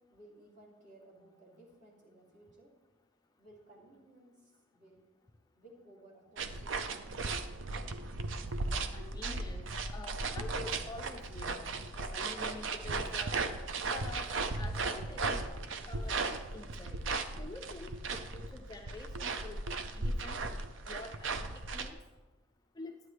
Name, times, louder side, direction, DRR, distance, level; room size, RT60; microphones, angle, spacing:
voice 1, 0.1-2.7 3.4-5.0 5.6-6.9, right 1 dB, 40° right, -4 dB, 2.7 m, -58 dB
sound 1, 6.4-21.9, right 3 dB, 65° right, 0.6 m, -36 dB
voice 2, 8.7-11.6 12.0-13.3 13.9-14.3 14.6-15.4 15.9-17.0 17.3-20.4 20.9-22.0 22.8-22.9, left 2 dB, 20° left, 4 dB, 0.4 m, -48 dB
11.5 x 8.9 x 3.2 m, 1.2 s
head